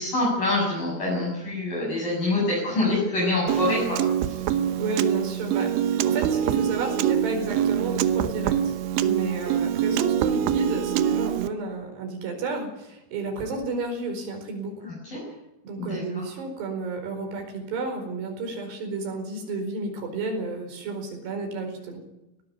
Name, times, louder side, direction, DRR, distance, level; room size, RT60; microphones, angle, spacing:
voice 1, 0.0-4.4 14.9-15.2 15.8-16.2, left 2 dB, 50° left, -4 dB, 8.9 m, -26 dB
Piano, 3.5-11.5, right 10 dB, 85° right, 3.4 m, -24 dB
voice 2, 4.8-8.7 9.0-14.9 15.6-22.0, right 3 dB, 65° right, 4 dB, 6.7 m, -32 dB
18.5 x 18.0 x 9.6 m, 0.92 s
omnidirectional pair, 5.2 m